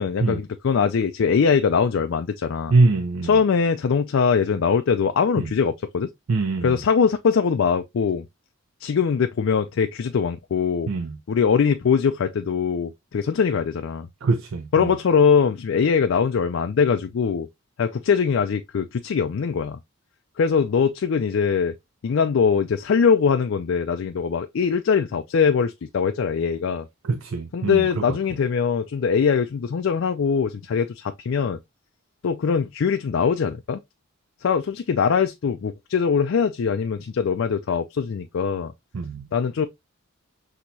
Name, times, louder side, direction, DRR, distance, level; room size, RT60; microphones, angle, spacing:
voice 1, 0.0-2.7 3.2-6.1 6.6-8.3 8.8-10.9 11.3-14.1 14.7-17.5 17.8-19.8 20.4-21.7 22.0-26.9 27.5-31.6 32.2-33.8 34.4-38.7 39.3-39.7, left 6 dB, 60° left, 0.4 m, -22 dB
voice 2, 2.7-3.4 5.4-5.5 6.3-6.8 10.9-11.2 14.2-14.9 27.0-28.0 38.9-39.3, right 3 dB, 60° right, 0.4 m, -23 dB
6.0 x 2.9 x 2.6 m
head